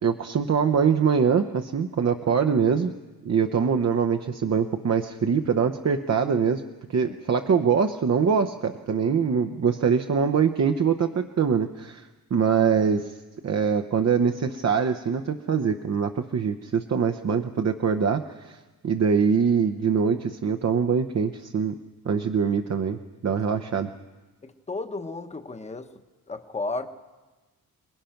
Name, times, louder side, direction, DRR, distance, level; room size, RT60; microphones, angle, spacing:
voice 1, 0.0-2.9 3.2-6.6 6.9-13.2 13.4-18.6 18.8-21.7 22.0-23.9, right 6 dB, 45° right, 6 dB, 0.8 m, -23 dB
voice 2, 24.4-25.9 26.3-26.9, left 3 dB, 20° left, 7 dB, 1.1 m, -33 dB
28.5 x 20.0 x 5.9 m, 1.2 s
wide cardioid pair, 140°, 37 cm